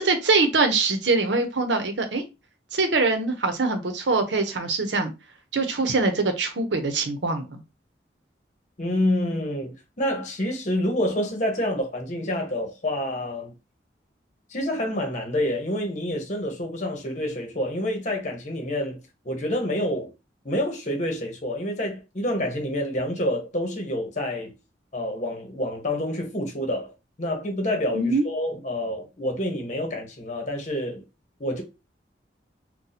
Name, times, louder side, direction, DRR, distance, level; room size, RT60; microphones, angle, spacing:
voice 1, 0.0-2.2 2.7-5.1 5.5-7.6 27.9-28.2, right 3 dB, 80° right, 0.8 m, -23 dB
voice 2, 8.8-13.5 14.5-19.0 19.2-20.1 20.4-24.5 24.9-26.9 27.2-31.0 31.4-31.6, left 1 dB, 40° left, 1.0 m, -28 dB
2.7 x 2.3 x 4.0 m
head